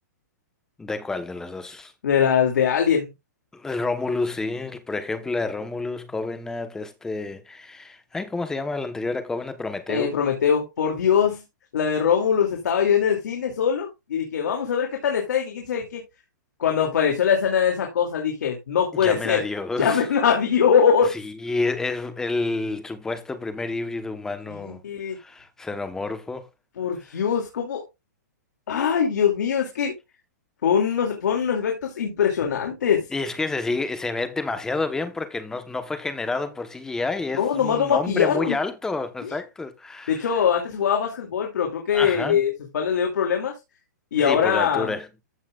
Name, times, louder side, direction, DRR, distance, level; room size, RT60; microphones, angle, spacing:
voice 1, 0.8-1.9 3.5-10.1 18.9-20.0 21.1-24.8 25.2-26.5 33.1-40.3 41.9-42.4 44.2-45.1, left 3 dB, 5° left, 1.1 m, -29 dB
voice 2, 2.0-3.1 9.9-11.4 11.7-16.0 16.6-19.4 19.8-21.1 24.5-25.2 26.8-27.8 28.7-29.9 30.6-33.1 37.3-38.6 39.2-39.3 40.1-43.6 44.1-44.9, left 7 dB, 75° left, 2.6 m, -22 dB
14.5 x 5.7 x 2.4 m
hypercardioid pair, 160°, 10 cm